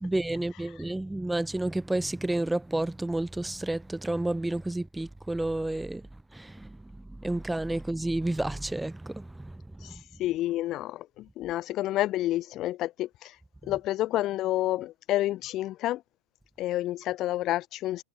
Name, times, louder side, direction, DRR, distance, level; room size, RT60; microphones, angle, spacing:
voice 1, 0.0-6.0 6.3-6.8 7.2-9.9, right 2 dB, 5° right, 0.6 m, -30 dB
voice 2, 9.8-13.3 13.6-16.0 16.6-18.0, left 15 dB, 35° left, 0.7 m, -29 dB
figure-of-eight pair, 90°, 0 cm